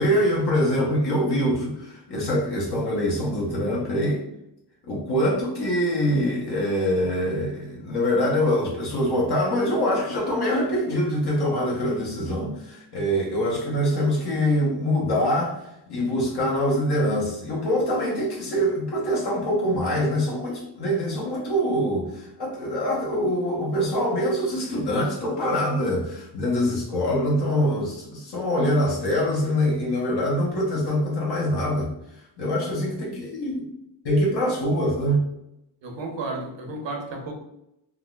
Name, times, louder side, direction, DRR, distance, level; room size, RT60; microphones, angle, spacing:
voice 1, 0.0-4.2 4.8-31.9 32.4-33.6 34.0-35.3, equal, 60° left, -4 dB, 0.9 m, -24 dB
voice 2, 35.8-37.3, right 3 dB, 80° right, 1 dB, 0.9 m, -32 dB
3.6 x 2.4 x 2.3 m, 0.81 s
wide cardioid pair, 135°, 44 cm